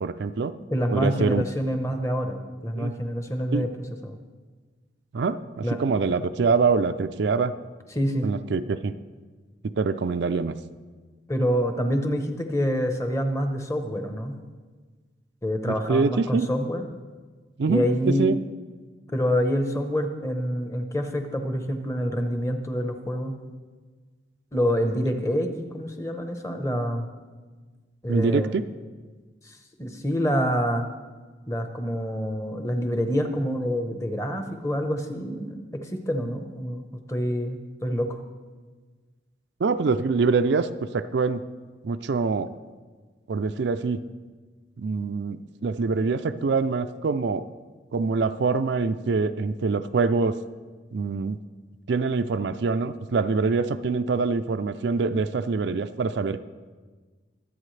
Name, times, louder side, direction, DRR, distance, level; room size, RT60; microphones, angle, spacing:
voice 1, 0.0-0.6 0.9-1.5 2.8-2.9 3.5-3.7 5.1-7.5 8.2-9.0 9.6-10.6 15.7-16.5 17.6-18.4 28.1-28.6 39.6-41.4 41.8-42.5 43.3-44.0 44.8-47.5 47.9-50.4 50.9-51.4 51.9-56.4, right 4 dB, 65° right, 11 dB, 0.4 m, -25 dB
voice 2, 0.7-3.7 4.0-4.2 5.6-5.8 7.9-8.3 11.3-14.4 15.4-16.9 17.7-18.3 19.1-23.4 24.5-27.1 28.0-28.5 29.4-30.9 31.5-38.2, equal, 15° left, 5 dB, 0.9 m, -27 dB
23.0 x 8.4 x 3.3 m, 1.4 s
head